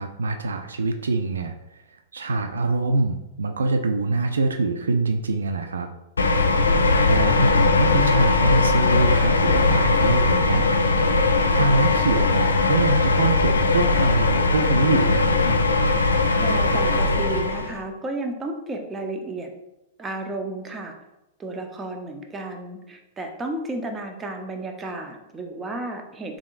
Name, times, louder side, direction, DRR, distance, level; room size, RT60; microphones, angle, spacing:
voice 1, 0.0-1.8 2.1-5.9 6.9-10.7 11.5-15.6, right 3 dB, 80° right, 6 dB, 0.3 m, -24 dB
sound 1, 6.2-17.8, left 3 dB, 85° left, 0.4 m, -20 dB
voice 2, 16.4-19.5 20.0-20.9 21.4-26.4, right 2 dB, 20° right, 3 dB, 0.6 m, -32 dB
3.6 x 3.6 x 2.4 m, 0.94 s
hypercardioid pair, 105°, 0 cm